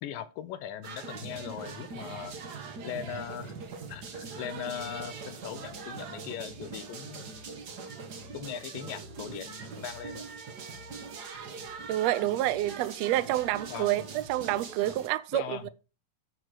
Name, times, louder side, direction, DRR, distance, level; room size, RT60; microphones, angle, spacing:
voice 1, 0.0-2.4 2.8-3.6 3.9-7.3 8.3-10.2 13.7-14.0 15.3-15.7, left 9 dB, 85° left, 2.6 m, -39 dB
sound 1, 0.8-15.1, right 4 dB, 65° right, 1.0 m, -42 dB
voice 2, 11.9-14.0 14.3-15.7, right 14 dB, 90° right, 1.4 m, -28 dB
10.0 x 4.5 x 6.4 m
omnidirectional pair, 3.8 m